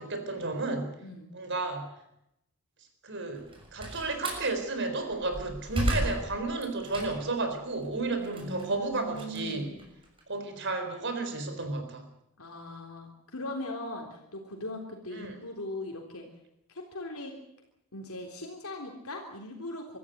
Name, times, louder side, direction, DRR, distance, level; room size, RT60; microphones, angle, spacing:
voice 1, 0.0-0.9 1.3-1.9 3.0-9.7 10.3-12.0 15.1-15.3, right 3 dB, 55° right, 7 dB, 4.5 m, -32 dB
voice 2, 1.0-1.3 8.2-9.8 12.4-16.3 16.7-17.3 17.9-20.0, left 1 dB, 75° left, 1 dB, 3.6 m, -40 dB
Slam, 3.4-4.5 5.0-7.4 7.8-10.2, equal, 25° right, 6.5 m, -34 dB
24.5 x 14.0 x 9.5 m, 0.83 s
head